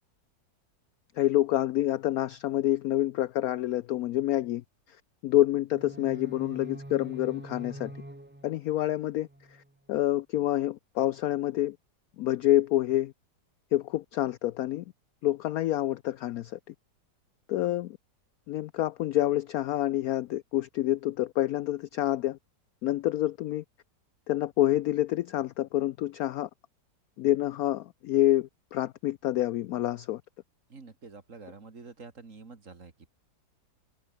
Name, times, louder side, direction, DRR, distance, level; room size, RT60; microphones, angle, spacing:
voice 1, 1.2-4.6 5.2-7.9 8.4-9.3 9.9-11.8 12.2-13.1 13.7-14.8 15.2-16.5 17.5-18.0 18.5-22.4 22.8-23.6 24.3-26.5 27.2-30.2, left 14 dB, 70° left, 0.9 m, -27 dB
sound 1, 5.7-9.8, right 1 dB, 5° right, 1.1 m, -45 dB
voice 2, 30.7-33.1, right 4 dB, 45° right, 2.7 m, -48 dB
omnidirectional pair, 1.9 m